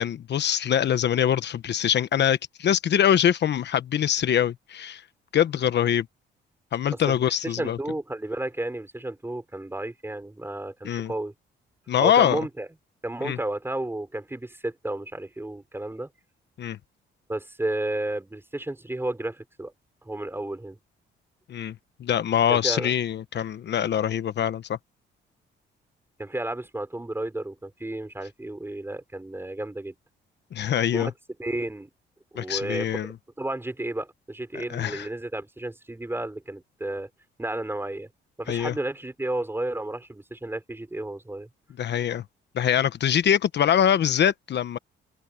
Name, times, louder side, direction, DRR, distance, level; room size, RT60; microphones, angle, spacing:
voice 1, 0.0-5.0 5.3-6.1 6.7-7.8 10.8-11.1 11.9-12.4 13.2-13.4 16.6-16.8 21.5-21.7 22.0-24.8 30.5-31.1 32.4-33.1 34.7-35.1 38.5-38.7 41.8-42.2 42.5-44.8, left 9 dB, 60° left, 1.2 m, -23 dB
voice 2, 7.1-11.3 12.0-12.7 13.0-16.1 17.3-19.7 20.0-20.8 22.5-22.9 26.2-29.9 30.9-31.1 31.4-31.9 32.3-37.1 37.4-38.1 38.4-41.5, right 1 dB, 10° right, 5.1 m, -32 dB
open air
cardioid pair, 90°, 20 cm